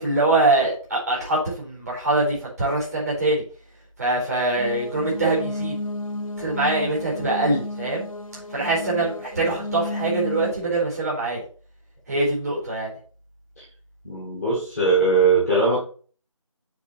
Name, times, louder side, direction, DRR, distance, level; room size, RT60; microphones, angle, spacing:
voice 1, 0.0-3.4 4.0-5.7 6.4-8.1 8.5-11.4 12.1-12.9, right 2 dB, 30° right, -5 dB, 4.4 m, -23 dB
sound 1, 4.5-10.5, left 2 dB, 85° left, 1.1 m, -32 dB
voice 2, 14.0-15.8, right 3 dB, ahead, -9 dB, 1.3 m, -20 dB
8.7 x 4.2 x 4.4 m, 0.40 s
figure-of-eight pair, 170°, 17 cm